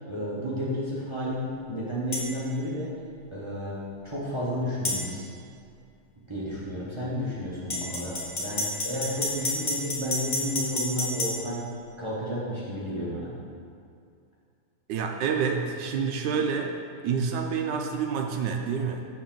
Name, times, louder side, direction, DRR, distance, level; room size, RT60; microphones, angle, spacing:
voice 1, 0.1-2.9 3.3-3.8 4.0-5.3 6.3-11.6 12.0-13.3, equal, 20° right, -7 dB, 0.8 m, -32 dB
sound 1, 2.1-2.3 4.8-5.0 7.7-11.3, left 2 dB, 30° left, 1.0 m, -29 dB
voice 2, 14.9-16.7 17.0-19.0, right 6 dB, 75° right, 3 dB, 1.0 m, -28 dB
7.2 x 6.3 x 3.8 m, 2.4 s
omnidirectional pair, 2.3 m